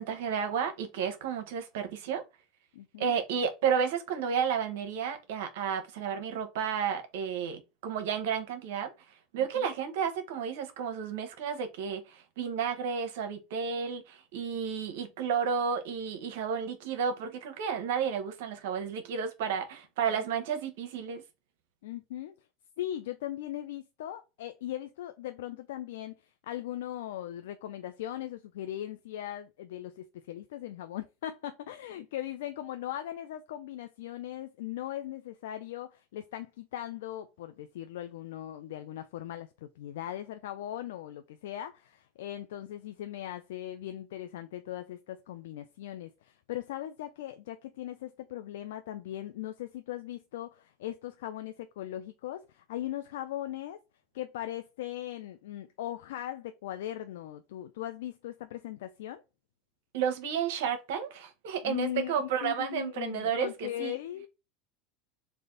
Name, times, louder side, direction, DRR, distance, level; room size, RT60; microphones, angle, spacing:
voice 1, 0.0-2.2 3.0-8.9 9.3-21.2 59.9-64.0, right 7 dB, 80° right, 0.9 m, -32 dB
voice 2, 2.7-3.1 9.4-9.7 20.1-20.2 21.8-22.4 22.8-53.8 54.1-59.2 61.6-64.3, left 12 dB, 85° left, 0.4 m, -39 dB
3.4 x 2.5 x 3.7 m
supercardioid pair, 120°, 0 cm